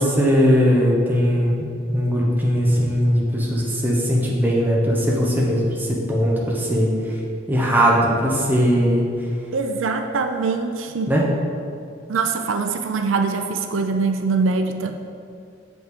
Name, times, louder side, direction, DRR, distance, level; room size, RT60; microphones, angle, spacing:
voice 1, 0.0-1.7 1.9-6.9 7.5-9.0 11.1-11.3, equal, 10° right, -4 dB, 0.9 m, -19 dB
voice 2, 9.5-11.1 12.1-14.9, right 4 dB, 85° right, 6 dB, 0.4 m, -23 dB
7.2 x 5.2 x 3.2 m, 2.4 s
head